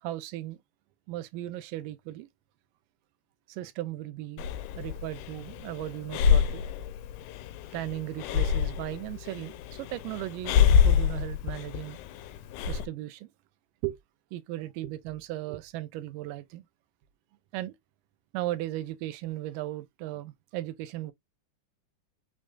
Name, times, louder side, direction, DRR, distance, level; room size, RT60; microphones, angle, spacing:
voice 1, 0.0-0.6 1.1-2.3 3.5-4.4 4.8-6.6 7.7-12.0 12.7-13.3 13.8-14.0 14.3-16.7 17.5-17.7 18.3-21.1, right 15 dB, 80° right, 2.0 m, -36 dB
Breathing, 4.4-12.9, left 7 dB, 80° left, 1.8 m, -27 dB
6.3 x 3.2 x 2.2 m
omnidirectional pair, 4.1 m